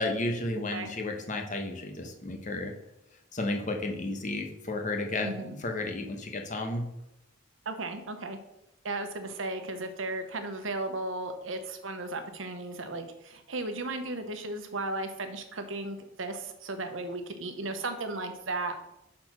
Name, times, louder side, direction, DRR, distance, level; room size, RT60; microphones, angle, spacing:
voice 1, 0.0-2.7 3.3-6.8, left 2 dB, 40° left, 3 dB, 1.0 m, -32 dB
voice 2, 5.2-5.5 7.6-8.4 8.8-18.8, right 2 dB, 85° right, 7 dB, 0.9 m, -35 dB
6.2 x 4.3 x 6.0 m, 0.86 s
head